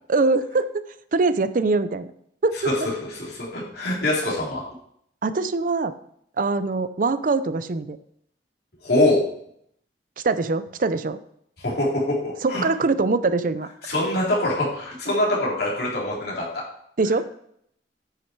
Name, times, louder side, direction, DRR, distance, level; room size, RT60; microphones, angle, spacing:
voice 1, 0.1-0.7 1.1-2.1 2.4-2.6 5.2-5.9 6.4-8.0 10.2-11.2 12.4-13.7 17.0-17.5, right 3 dB, 50° right, 13 dB, 0.5 m, -23 dB
voice 2, 3.1-4.6 8.8-9.2 11.6-12.6 13.8-16.5, left 1 dB, 65° left, -4 dB, 3.8 m, -24 dB
9.7 x 6.3 x 4.6 m, 0.70 s
head